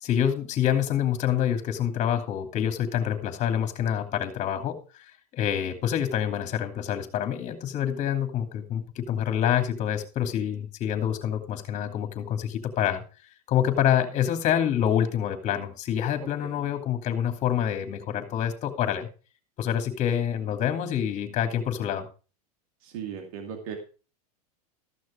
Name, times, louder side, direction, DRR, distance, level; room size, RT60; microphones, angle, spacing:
voice 1, 0.0-13.0 13.5-19.1 19.6-22.1, left 9 dB, 40° left, 6 dB, 2.8 m, -27 dB
voice 2, 16.2-16.6 22.8-23.8, right 7 dB, 65° right, 4 dB, 2.3 m, -38 dB
14.0 x 6.5 x 5.1 m, 0.35 s
supercardioid pair, 120°, 20 cm